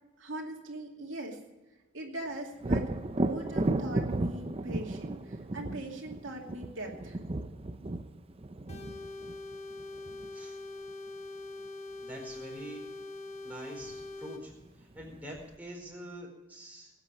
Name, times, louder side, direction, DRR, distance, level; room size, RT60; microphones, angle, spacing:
voice 1, 0.2-1.4 1.9-7.2, right 1 dB, 80° right, 0 dB, 2.5 m, -40 dB
Thunder, 2.6-10.3 13.9-14.0 14.5-15.4, right 2 dB, 30° right, 0.6 m, -34 dB
sound 1, 8.7-14.4, left 2 dB, 35° left, 1.4 m, -43 dB
voice 2, 12.0-12.8 13.4-16.9, right 1 dB, 10° right, -2 dB, 4.4 m, -45 dB
19.0 x 8.8 x 6.3 m, 1.0 s
head